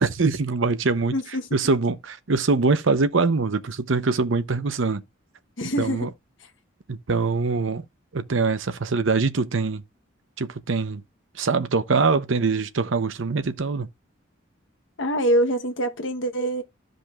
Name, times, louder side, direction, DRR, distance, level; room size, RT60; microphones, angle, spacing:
voice 1, 0.0-1.1 1.5-5.0 5.8-6.1 6.9-7.8 8.1-9.8 10.4-11.0 11.3-13.9, right 4 dB, 70° right, 0.7 m, -23 dB
voice 2, 1.1-1.5 5.6-6.1 6.4-6.5 15.0-16.6, right 1 dB, 65° left, 1.1 m, -24 dB
13.5 x 5.2 x 2.4 m
head